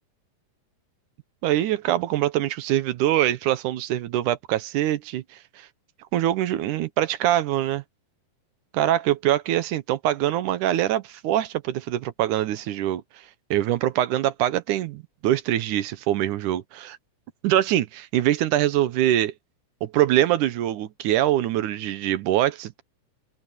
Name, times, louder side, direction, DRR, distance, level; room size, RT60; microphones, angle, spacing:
voice 1, 1.4-5.7 6.1-7.8 8.7-13.0 13.5-17.0 17.4-19.3 19.8-22.8, right 13 dB, 80° right, 2.4 m, -23 dB
omnidirectional pair, 3.6 m